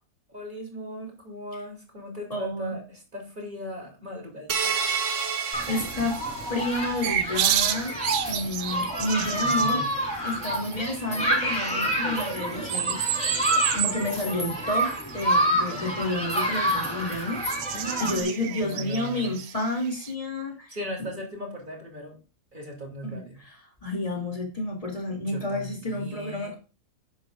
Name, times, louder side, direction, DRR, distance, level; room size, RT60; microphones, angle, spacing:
voice 1, 0.3-4.7 9.3-9.9 17.7-19.4 20.7-22.2 22.5-23.4 25.2-26.6, right 1 dB, 35° right, -1 dB, 3.6 m, -38 dB
voice 2, 2.3-2.8 5.3-5.4 5.7-6.2 6.5-8.0 8.3-9.9 10.2-13.0 13.7-17.4 18.0-21.1 23.0-23.2 23.8-26.6, left 2 dB, 25° left, -1 dB, 3.0 m, -30 dB
sound 1, 4.5-7.0, right 6 dB, 60° right, 1.6 m, -30 dB
Human group actions, 5.5-18.2, right 1 dB, 5° left, 4.1 m, -28 dB
sound 2, 7.0-9.7 10.2-11.0 11.2-11.5 11.9-14.1 14.3-16.3 17.1-20.1, right 11 dB, 80° right, 1.2 m, -30 dB
11.0 x 9.8 x 2.6 m, 0.34 s
omnidirectional pair, 1.5 m